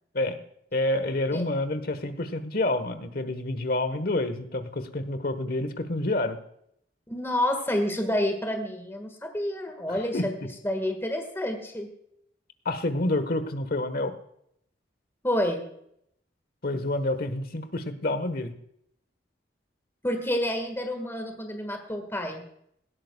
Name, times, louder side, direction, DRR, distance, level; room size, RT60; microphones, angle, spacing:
voice 1, 0.7-6.4 10.1-10.3 12.6-14.1 16.6-18.5, left 2 dB, 55° left, 11 dB, 1.3 m, -28 dB
voice 2, 7.1-10.3 10.6-11.9 15.2-15.7 20.0-22.4, left 1 dB, 15° left, 5 dB, 1.7 m, -29 dB
18.0 x 12.5 x 2.3 m, 0.72 s
head